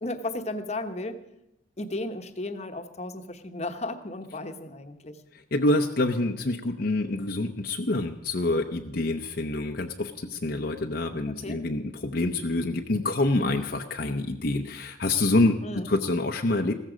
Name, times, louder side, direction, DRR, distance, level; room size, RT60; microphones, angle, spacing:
voice 1, 0.0-1.2 1.8-5.2 11.3-11.6 15.6-15.9, left 2 dB, 35° left, 8 dB, 1.0 m, -34 dB
voice 2, 5.5-16.7, left 2 dB, 55° left, 3 dB, 0.7 m, -26 dB
15.5 x 14.0 x 5.1 m, 0.89 s
head